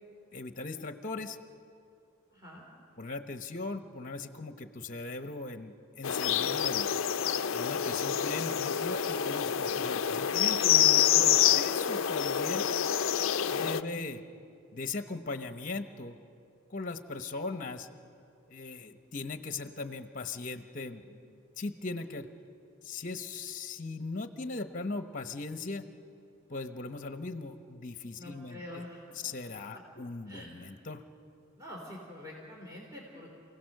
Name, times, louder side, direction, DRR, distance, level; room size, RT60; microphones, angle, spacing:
voice 1, 0.3-1.4 3.0-6.9 7.5-12.7 13.5-14.2 14.7-16.2 16.7-17.9 18.5-22.3 22.8-25.9 26.5-28.8 29.1-31.0, left 3 dB, 35° left, 8 dB, 0.9 m, -39 dB
voice 2, 2.3-2.6 13.4-14.0 28.1-29.0 29.7-29.8 30.3-30.6 31.6-33.3, left 1 dB, 15° right, -3 dB, 3.1 m, -46 dB
sound 1, 6.0-13.8, left 9 dB, 65° left, 0.5 m, -27 dB
29.0 x 17.0 x 6.6 m, 2.5 s
head